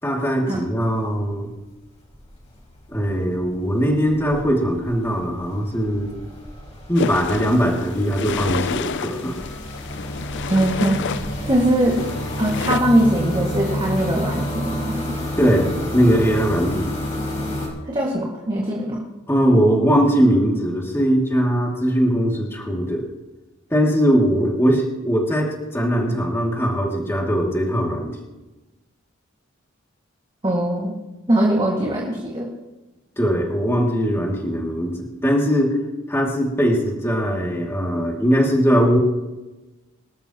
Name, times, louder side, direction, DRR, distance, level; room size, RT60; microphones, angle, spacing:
voice 1, 0.0-1.5 2.9-6.1 6.9-9.3 15.4-15.7 15.9-16.9 19.3-23.0 23.7-28.2 33.2-35.8 36.1-39.0, equal, 10° left, -2 dB, 2.6 m, -20 dB
sound 1, 0.8-1.2 1.5-17.7, equal, 35° left, 5.6 m, -30 dB
sound 2, 6.9-12.8, left 6 dB, 60° left, 0.5 m, -30 dB
voice 2, 10.4-12.0 12.4-15.2 17.8-19.0 30.4-31.0 31.3-32.5, right 1 dB, 25° right, -3 dB, 2.2 m, -21 dB
26.0 x 13.0 x 3.1 m, 1.1 s
head